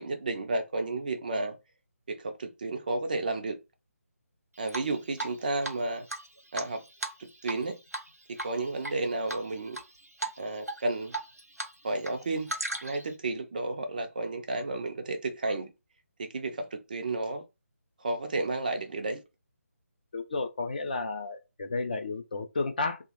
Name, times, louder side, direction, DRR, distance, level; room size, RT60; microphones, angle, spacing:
voice 1, 0.0-1.6 2.1-3.6 4.6-6.1 6.5-6.8 7.4-7.8 8.4-9.8 10.4-11.1 11.8-12.5 12.8-15.7 16.2-17.4 18.0-19.2, right 2 dB, 35° right, 0.4 m, -32 dB
Drip, 4.7-5.4 5.6-5.7 6.1-7.6 7.9-8.1 8.4-8.9 9.3-9.8 10.2-10.4 10.7-11.7 12.0-13.1, right 2 dB, 85° right, 0.7 m, -36 dB
voice 2, 20.1-23.0, left 3 dB, 35° left, 0.4 m, -32 dB
3.3 x 2.1 x 2.9 m
figure-of-eight pair, 150°, 8 cm